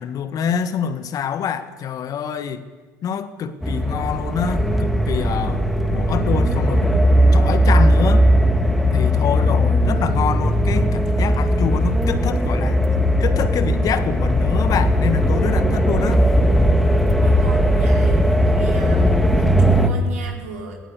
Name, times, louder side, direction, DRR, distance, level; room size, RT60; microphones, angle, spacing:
voice 1, 0.0-2.6 3.0-6.9 7.3-8.3 8.9-12.8 13.2-16.2, left 7 dB, 50° left, 11 dB, 1.5 m, -26 dB
sound 1, 3.6-19.9, equal, ahead, 2.5 m, -17 dB
voice 2, 17.2-19.1 19.3-20.8, right 4 dB, 80° right, 0 dB, 4.1 m, -36 dB
19.0 x 17.0 x 8.3 m, 1.4 s
figure-of-eight pair, 60°, 8 cm